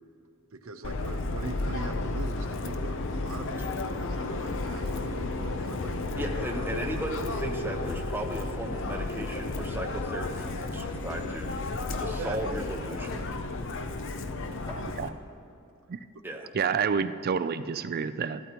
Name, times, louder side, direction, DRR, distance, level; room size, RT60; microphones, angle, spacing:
voice 1, 0.5-7.1 12.2-12.4, right 3 dB, 70° right, 7 dB, 0.7 m, -42 dB
Subway metro underground, 0.8-15.1, left 2 dB, 60° left, 0.6 m, -33 dB
voice 2, 6.2-13.3 16.2-16.5, right 1 dB, 10° right, 2 dB, 0.8 m, -36 dB
sound 1, 9.6-9.8 10.3-10.4 11.1-11.4 12.2-12.3 13.1-13.4 14.2-14.3 14.7-15.1, equal, 20° left, 1.3 m, -45 dB
voice 3, 14.8-15.1 15.9-16.0 16.5-18.4, right 6 dB, 45° right, 13 dB, 0.4 m, -29 dB
13.5 x 12.5 x 2.9 m, 2.6 s
head